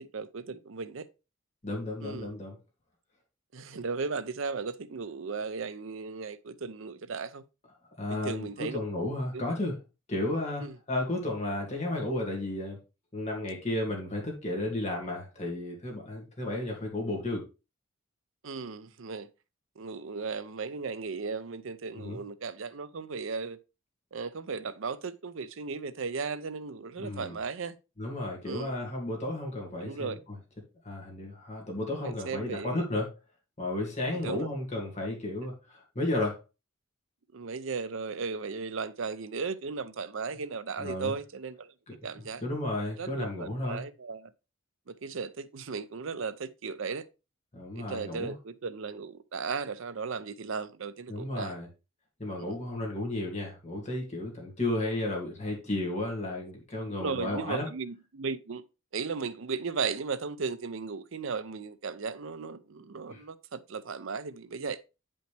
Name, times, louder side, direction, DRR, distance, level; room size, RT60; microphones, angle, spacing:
voice 1, 0.1-1.1 2.0-2.3 3.5-7.4 8.1-8.8 9.3-9.5 10.6-10.8 16.5-16.7 18.4-19.3 19.8-23.6 24.1-27.8 28.4-28.8 29.8-30.2 31.9-32.9 34.1-34.5 37.3-41.7 42.0-42.4 43.0-44.3 44.9-47.1 47.7-51.6 52.4-52.6 56.9-58.6 58.9-64.8, right 5 dB, 70° right, 0.6 m, -36 dB
voice 2, 1.6-2.6 8.0-9.8 10.1-12.8 13.1-17.4 21.9-22.2 27.0-27.4 28.0-30.2 30.8-33.1 33.6-36.4 40.8-41.1 42.4-43.8 47.5-48.3 51.1-51.7 52.2-57.7 63.1-63.2, left 1 dB, 30° left, 2.4 m, -33 dB
9.1 x 5.5 x 3.4 m
head